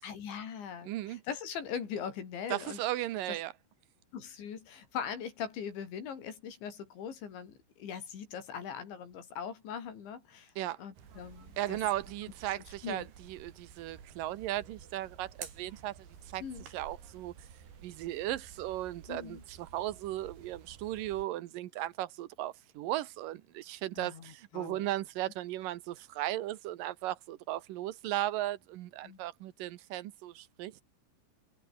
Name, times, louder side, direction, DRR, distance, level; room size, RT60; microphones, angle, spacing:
voice 1, 0.0-2.8 4.1-10.5 10.8-11.8 12.6-13.1 16.4-16.7 19.1-19.4 24.0-24.9 29.0-29.2, left 7 dB, 75° left, 6.2 m, -41 dB
voice 2, 0.8-1.2 2.5-3.5 10.6-10.8 11.6-16.1 16.3-16.4 16.7-17.3 17.8-30.8, right 15 dB, 80° right, 2.0 m, -36 dB
sound 1, 10.9-21.3, right 7 dB, 60° right, 5.8 m, -52 dB
omnidirectional pair, 5.3 m